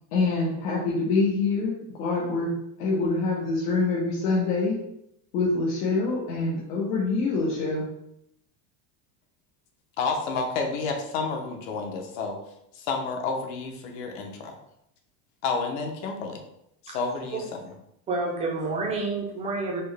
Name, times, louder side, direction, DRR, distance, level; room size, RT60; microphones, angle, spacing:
voice 1, 0.1-1.7 2.0-2.5 2.8-4.8 5.3-7.9, left 3 dB, 90° left, -5 dB, 1.0 m, -25 dB
voice 2, 10.0-12.4 12.7-14.6 15.4-16.4 16.8-17.7, left 4 dB, 65° left, 3 dB, 0.8 m, -30 dB
voice 3, 18.1-19.8, right 3 dB, 15° right, -1 dB, 0.4 m, -29 dB
4.3 x 2.1 x 3.3 m, 0.79 s
cardioid pair, 155°, 45 cm